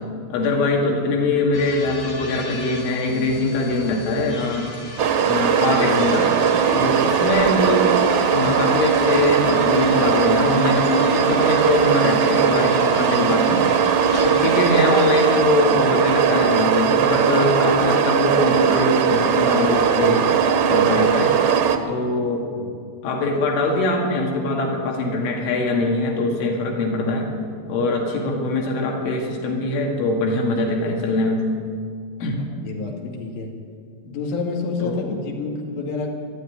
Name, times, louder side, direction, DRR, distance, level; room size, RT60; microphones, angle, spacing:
voice 1, 0.3-4.7 5.2-6.3 6.7-8.0 8.3-13.7 14.2-21.4 21.9-22.5 23.0-27.3 27.7-31.5 32.2-32.4 34.8-35.2, left 2 dB, 90° left, 0 dB, 4.8 m, -22 dB
sound 1, 1.5-15.4, left 2 dB, 45° left, 3.2 m, -37 dB
sound 2, 5.0-21.8, right 7 dB, 85° right, 1.6 m, -19 dB
voice 2, 6.8-7.2 22.6-22.8 32.4-33.5 34.0-36.1, left 4 dB, 70° left, 0 dB, 4.5 m, -29 dB
22.0 x 13.0 x 9.8 m, 2.2 s
omnidirectional pair, 5.3 m